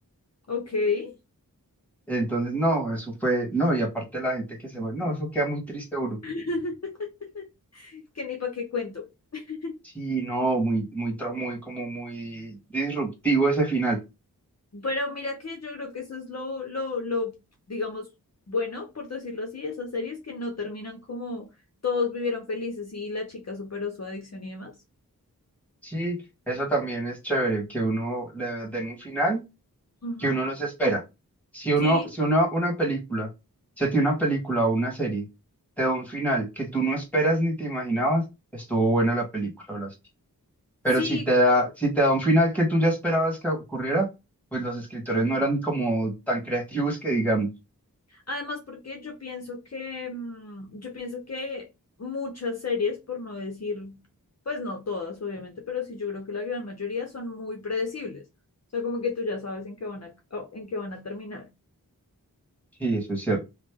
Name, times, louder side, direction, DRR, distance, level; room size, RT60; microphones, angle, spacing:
voice 1, 0.5-1.1 6.2-9.1 9.3-9.8 14.7-17.4 17.7-18.1 18.5-21.5 21.8-24.7 30.0-30.3 31.8-32.1 41.0-41.5 48.1-51.7 52.0-54.0 54.5-58.2 58.7-61.5, left 4 dB, 45° left, 0.7 m, -32 dB
voice 2, 2.1-6.2 10.0-14.0 25.8-26.2 26.5-29.4 30.2-31.0 31.5-33.3 33.8-35.2 35.8-38.3 38.5-39.9 40.8-44.1 44.5-47.5 62.8-63.4, right 1 dB, 5° left, 1.7 m, -25 dB
3.2 x 2.0 x 3.5 m
wide cardioid pair, 40°, 36 cm